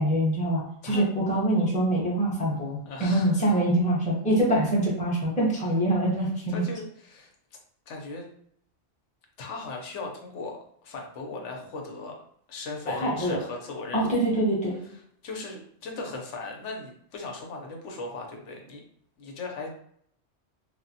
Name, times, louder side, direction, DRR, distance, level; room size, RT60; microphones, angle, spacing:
voice 1, 0.0-6.6 12.9-13.4 13.9-14.8, right 1 dB, 10° left, -4 dB, 0.6 m, -24 dB
voice 2, 2.8-3.5 6.5-7.3 7.9-8.3 9.4-12.2 12.5-14.2 15.2-18.8 19.2-19.7, left 3 dB, 80° left, 1 dB, 1.0 m, -38 dB
3.2 x 2.1 x 2.7 m, 0.66 s
omnidirectional pair, 1.2 m